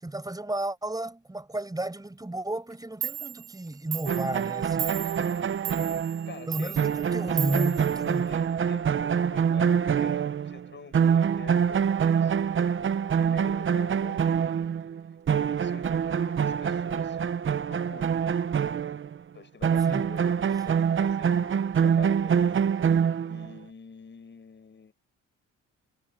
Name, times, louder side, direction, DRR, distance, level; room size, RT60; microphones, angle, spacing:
voice 1, 0.0-5.0 6.5-8.3 19.9-20.1, right 2 dB, 10° right, 6.9 m, -33 dB
Clock, 2.7-2.8 3.0-8.7, right 11 dB, 75° right, 1.9 m, -37 dB
sound 1, 4.1-10.7 10.9-19.2 19.6-23.6, right 7 dB, 40° right, 0.9 m, -25 dB
voice 2, 6.2-6.8 7.9-12.3 12.6-14.7 15.2-17.2 17.7-18.2 19.3-22.6 23.2-24.9, left 5 dB, 40° left, 6.6 m, -47 dB
cardioid pair, 90°, 30 cm